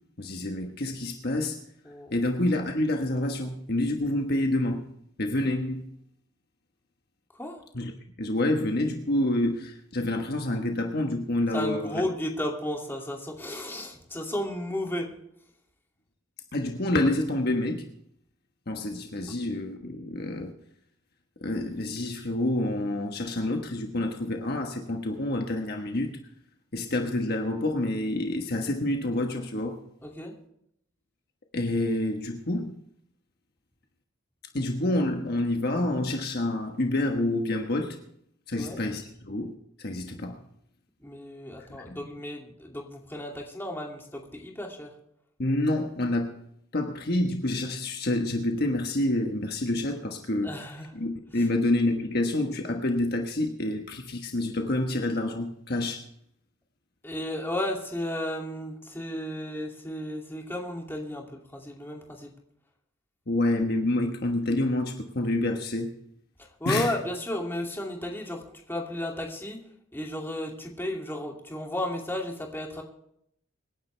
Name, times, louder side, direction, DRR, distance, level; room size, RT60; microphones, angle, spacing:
voice 1, 0.2-1.6 2.1-4.9 5.2-5.8 7.7-7.9 8.2-12.0 16.5-17.9 18.7-20.5 21.4-26.2 26.7-29.8 31.5-32.7 34.5-38.0 38.5-40.4 41.7-42.0 45.4-46.4 46.7-50.6 50.9-56.1 63.3-65.9 66.7-67.0, left 1 dB, 50° left, 1.3 m, -28 dB
voice 2, 11.5-15.1 30.0-30.3 38.5-38.8 41.0-44.9 50.4-50.9 57.0-62.3 66.6-68.4 68.7-69.6 69.9-72.8, left 1 dB, 10° left, 2.5 m, -33 dB
25.5 x 10.5 x 3.4 m
head